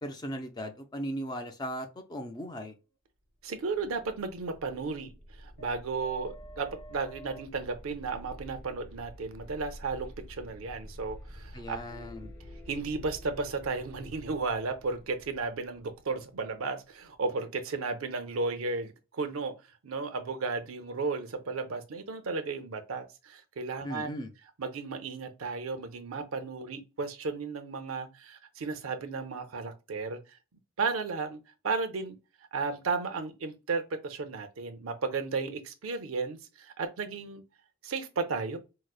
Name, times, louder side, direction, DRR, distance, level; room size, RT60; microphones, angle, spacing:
voice 1, 0.0-2.7 11.5-12.3 23.8-24.3, equal, 20° left, 0.4 m, -37 dB
voice 2, 3.4-5.1 5.4-11.8 12.2-12.3 12.7-19.5 19.8-24.1 24.6-30.2 30.8-32.2 32.5-37.4 37.8-38.6, right 4 dB, 85° right, 0.6 m, -34 dB
sound 1, 3.6-17.2, equal, 65° left, 1.1 m, -49 dB
4.7 x 2.0 x 2.3 m
head